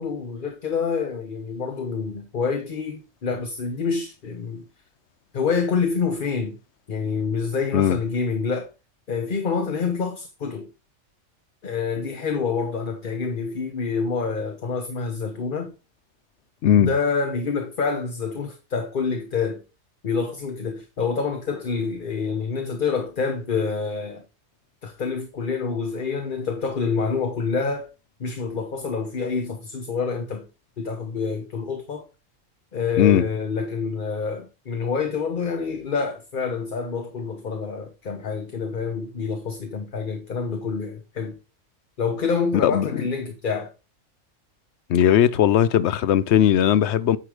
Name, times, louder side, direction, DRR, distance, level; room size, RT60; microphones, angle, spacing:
voice 1, 0.0-4.6 5.3-6.5 6.9-8.7 9.1-10.7 11.6-15.7 16.8-19.6 20.0-24.2 24.8-27.9 28.2-30.4 30.8-32.1 32.7-41.4 42.0-43.7, left 5 dB, 45° left, 1.1 m, -27 dB
voice 2, 16.6-16.9 33.0-33.2 42.6-43.0 44.9-47.2, left 10 dB, 65° left, 0.8 m, -18 dB
9.7 x 4.8 x 4.9 m
omnidirectional pair, 1.4 m